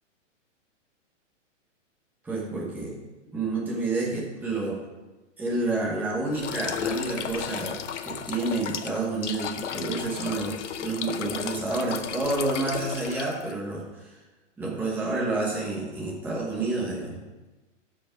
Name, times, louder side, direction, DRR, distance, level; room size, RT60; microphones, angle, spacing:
voice 1, 2.2-3.0 3.3-4.8 5.4-7.8 8.0-10.5 10.8-14.1 14.6-17.2, right 2 dB, 5° right, -5 dB, 1.2 m, -29 dB
sound 1, 6.3-13.5, left 8 dB, 70° left, 0.9 m, -34 dB
13.0 x 5.0 x 5.1 m, 1.2 s
hypercardioid pair, 165°, 37 cm